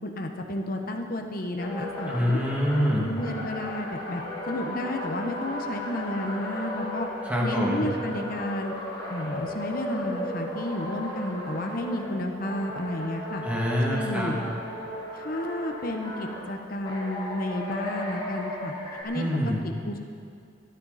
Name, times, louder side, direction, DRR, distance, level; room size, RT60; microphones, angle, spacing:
voice 1, 0.0-2.4 2.8-4.2 4.5-7.1 7.4-8.7 9.1-13.4 13.9-14.4 15.1-18.7 19.0-19.2 19.6-20.0, left 1 dB, 50° left, 3 dB, 1.1 m, -32 dB
sound 1, 1.6-12.1 12.4-16.4 16.8-19.0, left 1 dB, 25° left, 4.1 m, -35 dB
voice 2, 2.1-3.1 7.2-7.8 13.4-14.3 19.1-19.6, equal, 10° right, -4 dB, 2.4 m, -25 dB
24.5 x 10.0 x 4.2 m, 2.3 s
head